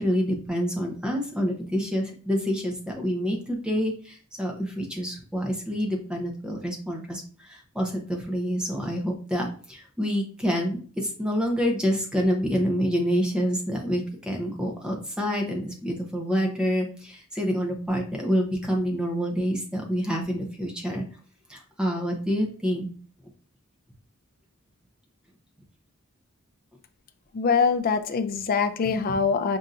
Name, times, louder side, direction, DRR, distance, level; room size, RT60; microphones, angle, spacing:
voice 1, 0.0-21.0 21.5-22.9, equal, 5° right, 0 dB, 0.7 m, -27 dB
voice 2, 27.3-29.6, left 5 dB, 40° left, 9 dB, 0.4 m, -23 dB
5.5 x 2.6 x 2.5 m, 0.42 s
head